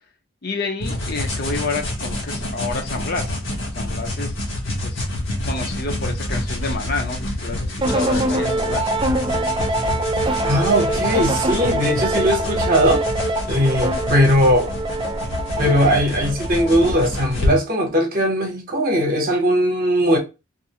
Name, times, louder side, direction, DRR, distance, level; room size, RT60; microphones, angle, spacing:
voice 1, 0.4-3.4 3.7-4.5 4.8-5.0 5.4-8.8, left 3 dB, 50° left, 0.6 m, -29 dB
sound 1, 0.8-17.5, left 1 dB, 70° left, 0.9 m, -27 dB
sound 2, 7.8-17.2, right 1 dB, 25° right, 0.3 m, -24 dB
voice 2, 10.4-13.0 13.4-14.7 15.6-20.2, equal, 45° right, 0.8 m, -19 dB
2.5 x 2.4 x 2.8 m
head